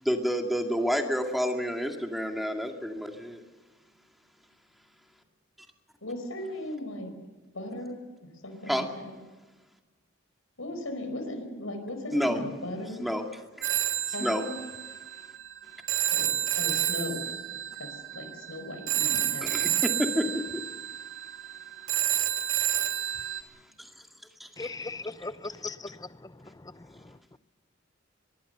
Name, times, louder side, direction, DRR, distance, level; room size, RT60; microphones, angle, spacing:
voice 1, 0.0-3.4 8.7-8.9 12.1-12.4 13.0-13.2 13.6-13.7 14.2-14.4 19.4-20.6 23.8-23.9 24.4-24.7, equal, ahead, 3 dB, 2.3 m, -29 dB
voice 2, 6.0-7.1 7.5-8.0 8.4-9.1 10.6-13.0 14.1-14.5 16.1-19.7, left 1 dB, 85° left, 7 dB, 4.8 m, -37 dB
Telephone, 13.6-23.4, right 12 dB, 75° right, 2.1 m, -30 dB
voice 3, 24.6-27.4, left 3 dB, 20° left, 14 dB, 0.6 m, -39 dB
24.0 x 21.0 x 6.8 m, 1.2 s
head